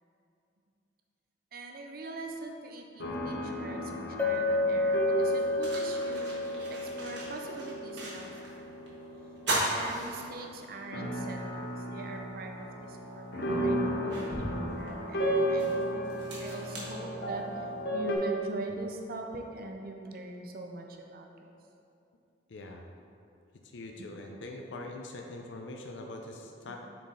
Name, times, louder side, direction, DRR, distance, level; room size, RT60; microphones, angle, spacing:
voice 1, 1.5-8.7 9.7-12.5 12.9-16.0 16.4-17.7 17.9-21.5 24.0-24.1 26.7-26.8, right 2 dB, 55° right, 3 dB, 0.6 m, -42 dB
sound 1, 3.0-18.2, equal, 60° left, 0.8 m, -35 dB
Chink clink, 4.2-8.2, left 2 dB, 10° left, 0.5 m, -31 dB
sound 2, 4.6-4.7 5.2-8.6 8.9-9.0 9.4-10.8 11.3-11.4 12.8-12.9 13.5-17.7, right 1 dB, 70° right, 1.3 m, -37 dB
voice 2, 22.5-22.8 23.7-26.8, left 2 dB, 85° left, 2 dB, 0.5 m, -43 dB
6.6 x 4.0 x 3.8 m, 2.6 s
head